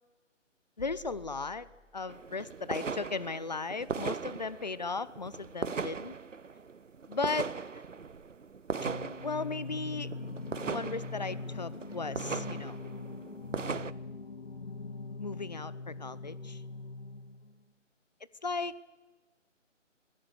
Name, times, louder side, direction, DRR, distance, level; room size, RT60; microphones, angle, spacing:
sound 1, 0.8-2.6, left 2 dB, 75° left, 5.9 m, -54 dB
voice 1, 0.8-1.7 1.9-6.1 7.1-7.5 7.7-7.8 9.2-10.1 10.7-12.8 15.2-16.6 18.4-18.9, left 4 dB, 35° left, 18 dB, 0.8 m, -36 dB
sound 2, 2.1-13.9, right 5 dB, 70° right, 0.8 m, -39 dB
Singing, 8.7-17.6, left 3 dB, 50° left, 1.5 m, -42 dB
27.5 x 21.5 x 6.8 m, 1.2 s
figure-of-eight pair, 155°, 38 cm